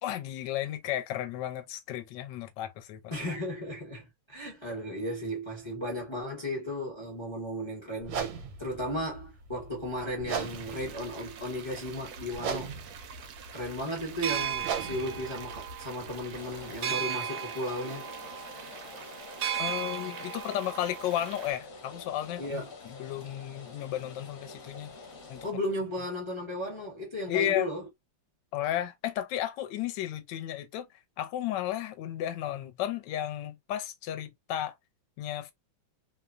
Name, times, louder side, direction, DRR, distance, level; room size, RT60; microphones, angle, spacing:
voice 1, 0.0-3.0 19.6-24.9 25.3-25.5 27.3-27.7 28.5-30.9 31.2-34.7 35.2-35.5, left 12 dB, 75° left, 1.2 m, -33 dB
voice 2, 3.1-12.7 13.5-18.1 22.4-22.7 25.4-27.9, equal, 30° left, 0.5 m, -35 dB
sound 1, 8.0-16.8, right 6 dB, 90° right, 1.4 m, -39 dB
sound 2, 10.3-21.5, right 8 dB, 70° right, 0.9 m, -38 dB
Rain, 16.4-25.5, left 3 dB, 55° left, 1.1 m, -48 dB
3.1 x 2.1 x 2.4 m
omnidirectional pair, 2.1 m